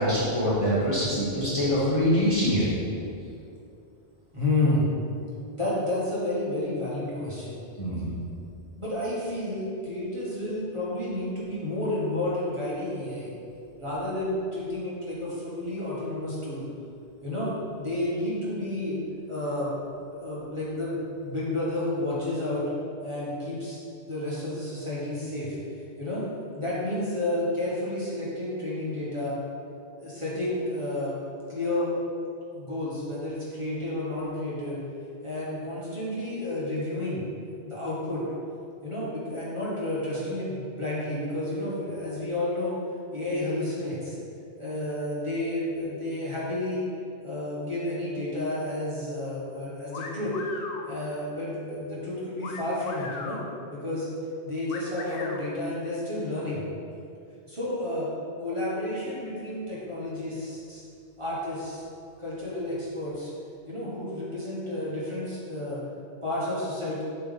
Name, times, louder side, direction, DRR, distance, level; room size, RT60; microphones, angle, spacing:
voice 1, 0.0-2.6 7.8-8.1, equal, 30° left, -10 dB, 1.3 m, -24 dB
voice 2, 4.3-4.9 5.5-7.6 8.8-13.3 13.8-16.7 17.2-19.0 19.3-19.7 20.1-22.7 23.0-23.8 24.1-25.6 26.0-26.2 26.6-29.4 30.0-31.2 31.5-31.9 32.5-34.8 35.2-37.2 37.6-38.2 38.8-42.8 43.1-44.1 44.6-46.8 47.2-50.3 50.9-53.4 53.7-54.1 54.4-56.6 57.5-58.1 58.4-60.8 61.2-61.8 62.2-63.3 63.7-65.8 66.2-67.0, left 1 dB, 25° right, -9 dB, 1.5 m, -31 dB
sound 1, 49.9-50.8 52.4-53.4 54.7-55.4, left 4 dB, 60° left, 0.7 m, -38 dB
7.3 x 3.4 x 4.0 m, 2.5 s
omnidirectional pair, 1.2 m